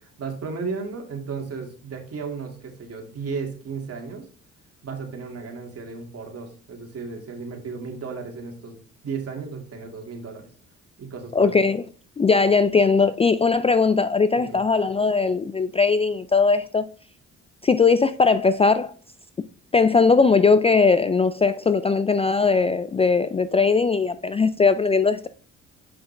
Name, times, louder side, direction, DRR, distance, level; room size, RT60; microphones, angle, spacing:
voice 1, 0.0-4.3 4.8-10.5 11.0-11.6 14.3-14.6, right 5 dB, 50° right, 2.4 m, -34 dB
voice 2, 11.3-11.9 12.2-16.9 17.6-18.9 19.7-25.3, left 4 dB, 20° left, 0.4 m, -19 dB
7.8 x 5.7 x 3.4 m
cardioid pair, 90°, 30 cm